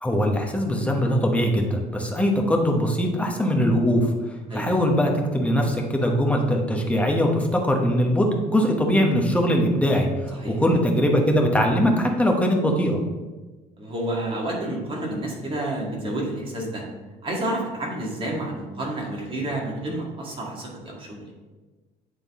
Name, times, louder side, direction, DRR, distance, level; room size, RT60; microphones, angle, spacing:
voice 1, 0.0-4.1 4.5-10.3 10.6-13.0, equal, 10° left, 1 dB, 1.1 m, -21 dB
voice 2, 13.8-16.8 17.2-21.3, right 1 dB, 30° right, -3 dB, 2.0 m, -30 dB
8.9 x 3.8 x 3.6 m, 1.2 s
cardioid pair, 110°, 17 cm